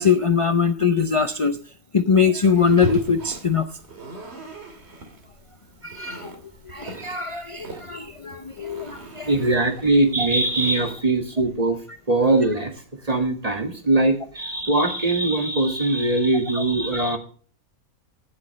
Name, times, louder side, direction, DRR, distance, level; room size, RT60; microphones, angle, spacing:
voice 1, 0.0-1.6 1.9-3.7 5.8-6.3 6.7-9.3 10.2-10.3 16.9-17.0, left 6 dB, 55° left, 9 dB, 0.3 m, -22 dB
sound 1, 2.4-10.9, right 2 dB, 45° right, 2.3 m, -39 dB
voice 2, 9.3-11.8 12.1-12.7 13.0-17.2, right 2 dB, 25° right, 5 dB, 1.9 m, -21 dB
16.5 x 7.8 x 3.1 m, 0.43 s
omnidirectional pair, 1.5 m